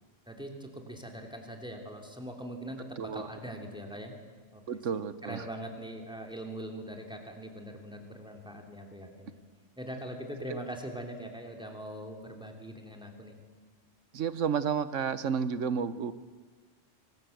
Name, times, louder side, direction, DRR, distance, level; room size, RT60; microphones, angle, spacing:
voice 1, 0.3-4.1 4.5-4.6 5.2-9.4 9.8-13.4, equal, 5° right, 2 dB, 3.0 m, -42 dB
voice 2, 3.0-3.3 4.7-5.4 10.5-10.6 14.1-16.1, right 7 dB, 75° right, 14 dB, 1.3 m, -31 dB
24.5 x 19.0 x 7.9 m, 1.4 s
omnidirectional pair, 1.3 m